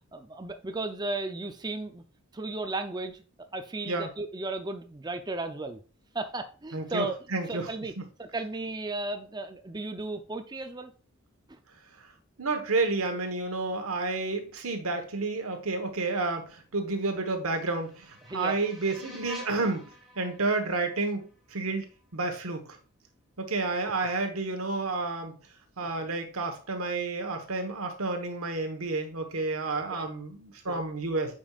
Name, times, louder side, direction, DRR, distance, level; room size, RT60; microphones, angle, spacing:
voice 1, 0.1-2.0 2.3-3.2 3.5-5.8 6.1-7.2 7.5-7.9 8.2-10.9 11.5-11.6 18.3-18.6 29.9-30.1 30.7-30.9, right 2 dB, 20° right, 7 dB, 0.5 m, -35 dB
voice 2, 6.7-7.7 8.0-8.1 12.4-19.9 20.2-21.8 22.1-22.8 23.4-25.4 25.8-31.3, right 3 dB, 80° right, 5 dB, 1.3 m, -30 dB
sound 1, 17.0-22.1, left 1 dB, ahead, 2.0 m, -49 dB
8.7 x 5.4 x 2.4 m, 0.38 s
head